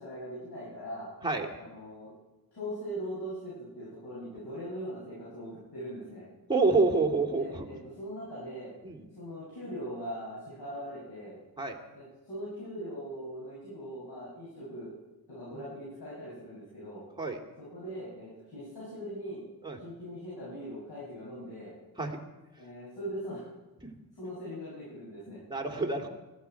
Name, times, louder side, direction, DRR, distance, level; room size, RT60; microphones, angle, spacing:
voice 1, 0.0-1.1 1.5-2.1 2.5-6.3 7.3-8.7 9.0-11.4 11.9-14.9 15.3-17.0 17.6-19.4 19.8-21.7 22.6-23.5 24.1-25.4, equal, 85° left, -8 dB, 7.6 m, -41 dB
voice 2, 6.5-7.6 8.8-9.0 11.6-11.8 17.2-17.4 19.6-19.8 22.0-22.2 25.5-26.1, right 3 dB, 10° right, 2 dB, 2.5 m, -27 dB
20.5 x 13.5 x 4.6 m, 1.1 s
cardioid pair, 85°, 38 cm